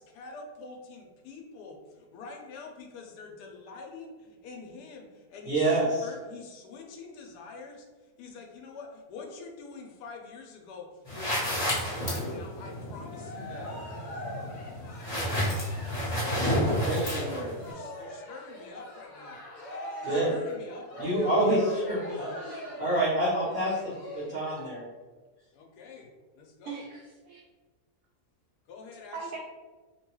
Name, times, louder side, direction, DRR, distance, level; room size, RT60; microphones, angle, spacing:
voice 1, 0.0-1.8 2.1-4.1 4.4-5.6 6.0-7.8 8.2-10.9 11.1-13.7 16.0-19.4 20.0-21.3 25.5-26.1 26.4-26.8 28.7-29.4, left 4 dB, 80° left, 2 dB, 1.2 m, -46 dB
voice 2, 5.4-6.1 16.8-17.5 20.0-20.3 21.0-22.3 22.8-24.8, right 1 dB, 35° right, -9 dB, 1.0 m, -27 dB
sound 1, 11.1-17.7, equal, 20° left, 0.7 m, -31 dB
Cheering, 12.9-24.6, equal, 60° left, 1.1 m, -41 dB
voice 3, 22.0-22.8 26.6-27.4 29.1-29.4, right 5 dB, 70° right, -2 dB, 1.0 m, -42 dB
3.3 x 2.2 x 3.0 m, 1.3 s
omnidirectional pair, 1.7 m